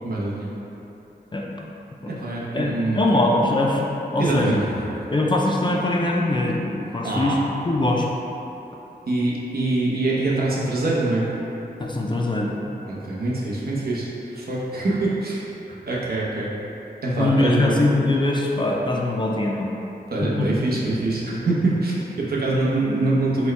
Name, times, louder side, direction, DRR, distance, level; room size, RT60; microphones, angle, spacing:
voice 1, 0.0-0.5 2.1-3.2 4.2-4.9 7.0-7.4 9.1-11.3 12.9-15.4 15.9-16.5 17.0-17.8 20.1-23.5, right 2 dB, 65° right, -6 dB, 0.8 m, -24 dB
voice 2, 2.5-4.6 5.1-8.1 11.8-12.8 17.2-19.7 20.4-20.5 20.9-21.0, left 2 dB, 30° left, -2 dB, 0.4 m, -22 dB
4.2 x 2.2 x 4.5 m, 3.0 s
wide cardioid pair, 115°, 17 cm